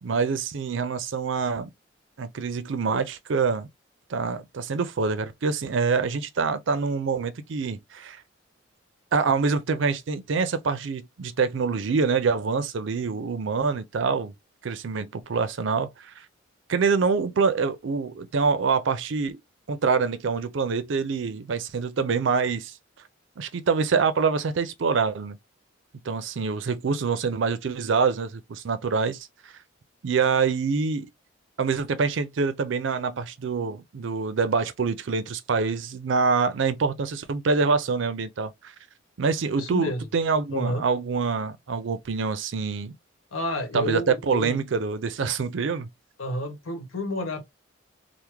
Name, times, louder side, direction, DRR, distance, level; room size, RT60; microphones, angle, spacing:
voice 1, 0.0-1.7 2.2-3.7 4.1-8.2 9.1-14.3 14.6-16.1 16.7-19.4 19.7-22.7 23.4-25.4 26.0-29.5 30.0-31.1 31.6-38.5 39.2-42.9 43.7-45.9, right 5 dB, 70° right, 0.4 m, -25 dB
voice 2, 39.6-40.0 40.5-40.8 43.3-44.6 46.2-47.4, left 1 dB, 85° left, 1.0 m, -30 dB
3.4 x 2.1 x 2.9 m
head